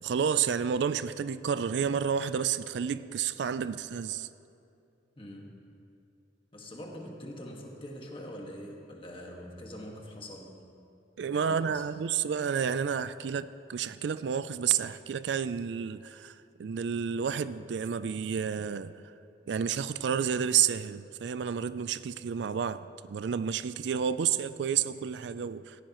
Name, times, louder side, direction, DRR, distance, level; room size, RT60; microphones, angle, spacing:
voice 1, 0.0-4.3 11.2-16.3 16.6-18.9 19.5-25.8, right 7 dB, 70° right, 14 dB, 0.4 m, -30 dB
voice 2, 5.2-5.6 6.5-10.6 11.2-11.8, equal, 30° left, -1 dB, 1.7 m, -44 dB
17.5 x 15.5 x 3.0 m, 2.6 s
head